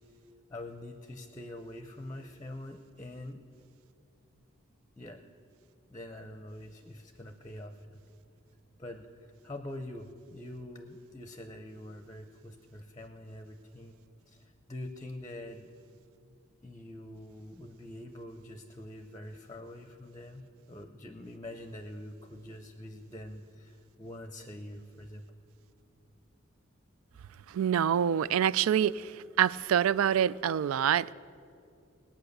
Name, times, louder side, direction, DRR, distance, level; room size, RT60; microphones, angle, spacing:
voice 1, 0.5-3.5 5.0-5.2 5.9-8.0 8.8-14.0 14.3-15.7 16.6-25.2, left 1 dB, 15° left, 0.6 m, -45 dB
voice 2, 27.5-29.1 29.4-31.1, right 9 dB, 85° right, 0.3 m, -26 dB
19.0 x 8.8 x 6.6 m
head